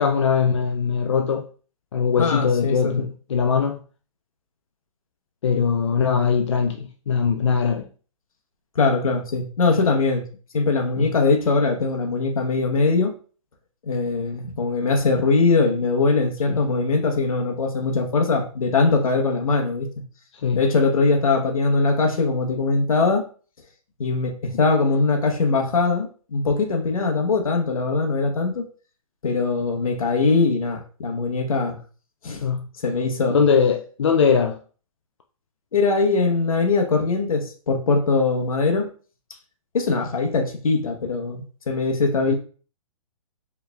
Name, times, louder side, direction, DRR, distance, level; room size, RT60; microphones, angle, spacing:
voice 1, 0.0-1.5 1.9-3.8 5.4-7.9 11.0-11.1 16.5-16.6 20.4-20.6 32.4-32.6 33.3-34.6 42.3-42.4, left 6 dB, 55° left, 0.4 m, -21 dB
voice 2, 2.2-3.1 8.8-10.2 10.5-13.1 13.9-19.9 20.5-23.3 24.0-28.6 29.2-31.8 32.2-32.4 32.8-33.4 35.7-38.9 39.7-42.3, left 3 dB, 75° left, 1.0 m, -21 dB
4.6 x 3.4 x 2.2 m
hypercardioid pair, 175°, 18 cm